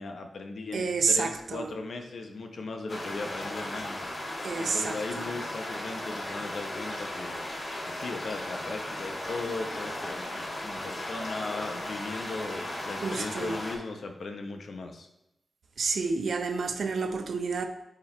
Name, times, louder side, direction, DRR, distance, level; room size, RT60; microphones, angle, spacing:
voice 1, 0.0-7.4 7.8-15.1, left 3 dB, 75° left, 4 dB, 0.8 m, -38 dB
voice 2, 0.7-1.7 4.4-5.3 13.0-13.6 15.8-17.6, right 4 dB, 80° right, 6 dB, 0.6 m, -29 dB
sound 1, 2.9-13.8, left 1 dB, 55° left, 2.5 m, -36 dB
8.8 x 3.0 x 4.3 m, 0.89 s
cardioid pair, 50°, 0 cm